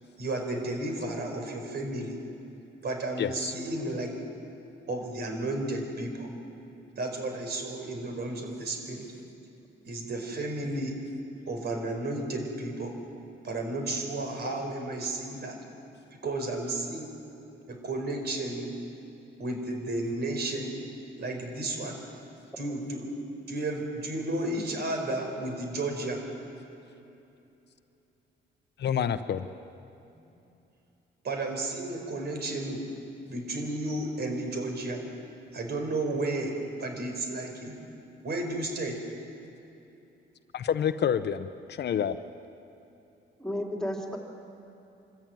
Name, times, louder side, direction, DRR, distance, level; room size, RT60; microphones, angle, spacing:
voice 1, 0.2-2.2 2.8-4.1 4.9-6.3 7.0-9.0 9.9-10.9 11.5-12.9 13.4-15.6 16.2-17.1 17.7-18.7 19.4-20.7 21.2-22.0 22.6-23.1 23.5-26.2 31.2-32.8 33.3-35.0 35.5-36.5 36.8-37.8 38.2-39.0, right 2 dB, 55° right, 3 dB, 4.6 m, -32 dB
voice 2, 3.2-3.5 28.8-29.5 40.5-42.2, left 8 dB, 60° left, 11 dB, 0.8 m, -28 dB
voice 3, 43.4-44.2, left 1 dB, 5° left, 0 dB, 3.4 m, -33 dB
25.0 x 14.0 x 9.1 m, 2.8 s
cardioid pair, 90°, 20 cm